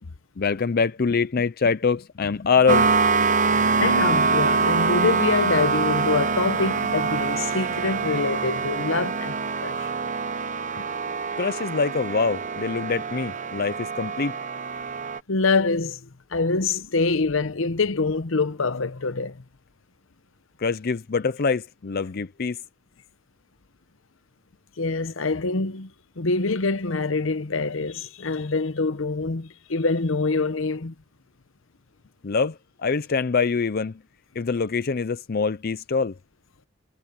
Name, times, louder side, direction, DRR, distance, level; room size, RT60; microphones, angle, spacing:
voice 1, 0.4-2.9 10.8-10.9 11.4-14.4 20.6-22.6 32.2-34.0 34.4-36.2, left 5 dB, 45° left, 0.5 m, -24 dB
sound 1, 2.7-15.2, right 4 dB, 35° right, 0.8 m, -24 dB
voice 2, 3.8-9.9 15.3-19.4 24.8-25.9 26.2-30.9, left 3 dB, 70° left, 0.9 m, -25 dB
head